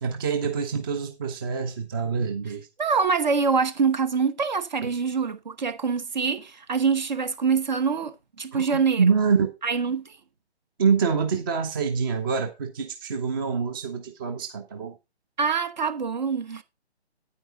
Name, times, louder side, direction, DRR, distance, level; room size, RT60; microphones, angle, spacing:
voice 1, 0.0-2.7 4.8-4.9 8.5-9.5 10.8-15.0, right 5 dB, 20° right, 0.8 m, -26 dB
voice 2, 2.8-9.1 9.6-10.1 15.4-16.6, right 5 dB, 40° right, 1.1 m, -25 dB
9.5 x 9.0 x 3.8 m
figure-of-eight pair, 145°, 33 cm